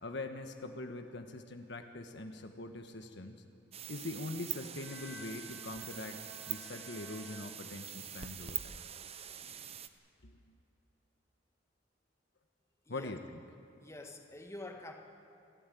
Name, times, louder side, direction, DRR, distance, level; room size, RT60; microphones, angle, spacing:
voice 1, 0.0-3.4 3.9-6.2 6.5-8.8 10.2-10.4 12.9-13.4, left 2 dB, 65° left, 6 dB, 1.4 m, -43 dB
sound 1, 3.7-9.9, right 9 dB, 35° right, 0.9 m, -44 dB
Bowed string instrument, 4.8-8.1, left 2 dB, 5° right, 3.5 m, -55 dB
voice 2, 13.8-14.9, left 2 dB, 15° left, 3 dB, 1.9 m, -47 dB
28.0 x 13.0 x 9.3 m, 2.9 s
head